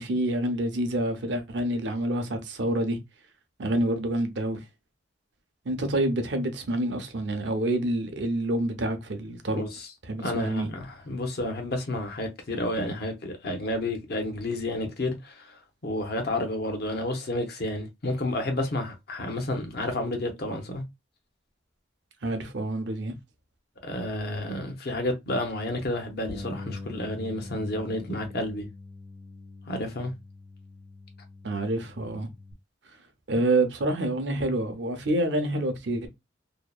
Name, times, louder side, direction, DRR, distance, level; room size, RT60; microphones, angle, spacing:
voice 1, 0.0-3.0 3.6-4.6 5.6-9.6 10.1-10.7 22.2-23.1 31.4-32.3 33.3-36.1, right 1 dB, 60° right, 0.6 m, -27 dB
voice 2, 9.6-9.9 10.2-20.8 23.8-28.7 29.7-30.1, left 1 dB, 50° left, 0.7 m, -31 dB
Bass guitar, 26.3-32.5, left 3 dB, 15° left, 0.4 m, -43 dB
2.7 x 2.1 x 2.2 m
head